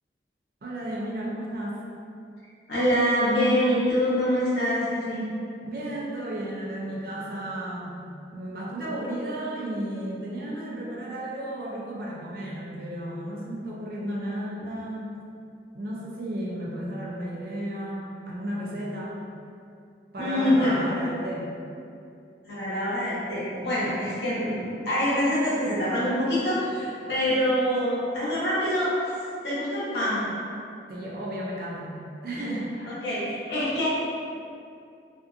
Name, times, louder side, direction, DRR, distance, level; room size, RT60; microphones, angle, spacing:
voice 1, 0.6-1.8 5.6-8.0 8.3-15.2 15.7-19.2 20.1-21.5 30.9-32.7, right 1 dB, 55° right, -4 dB, 0.4 m, -33 dB
voice 2, 2.7-5.3 20.2-20.9 22.4-24.6 24.8-28.9 29.4-30.3 32.8-33.9, equal, 80° left, -10 dB, 0.9 m, -25 dB
2.5 x 2.3 x 2.4 m, 2.5 s
head